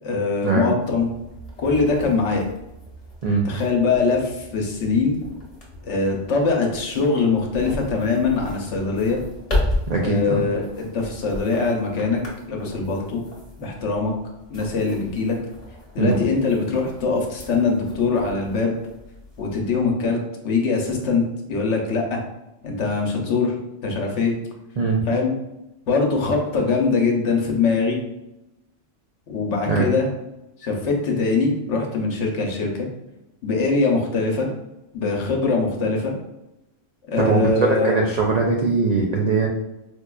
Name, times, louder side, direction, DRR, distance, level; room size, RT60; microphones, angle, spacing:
voice 1, 0.0-1.1 1.6-2.4 3.4-5.2 5.8-9.2 10.0-12.2 12.5-13.2 13.6-14.1 14.5-15.4 15.9-18.7 19.4-21.2 21.5-22.2 22.6-23.5 23.8-24.3 25.1-25.3 25.9-28.0 29.3-30.1 30.6-32.9 33.4-34.5 34.9-36.1 37.1-37.9, left 4 dB, 70° left, 1 dB, 1.0 m, -22 dB
sound 1, 0.8-19.9, left 1 dB, 35° left, 0.9 m, -35 dB
voice 2, 9.9-10.4 16.0-16.2 24.8-25.0 29.7-29.9 37.2-39.5, right 3 dB, 80° right, -1 dB, 0.3 m, -21 dB
4.3 x 2.4 x 2.3 m, 0.92 s
omnidirectional pair, 1.3 m